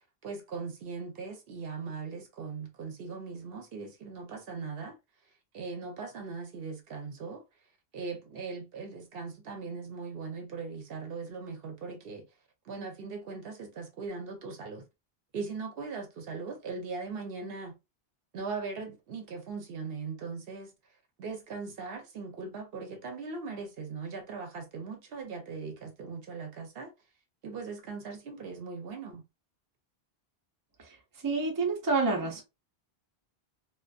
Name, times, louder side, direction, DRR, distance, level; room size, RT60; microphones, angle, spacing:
voice 1, 0.2-5.0 5.5-7.4 7.9-12.3 12.7-14.8 15.3-17.8 18.3-20.7 21.2-26.9 27.4-29.2, right 4 dB, 65° right, 0.8 m, -39 dB
voice 2, 31.2-32.4, right 3 dB, 25° right, 0.5 m, -28 dB
2.5 x 2.2 x 2.2 m
omnidirectional pair, 1.1 m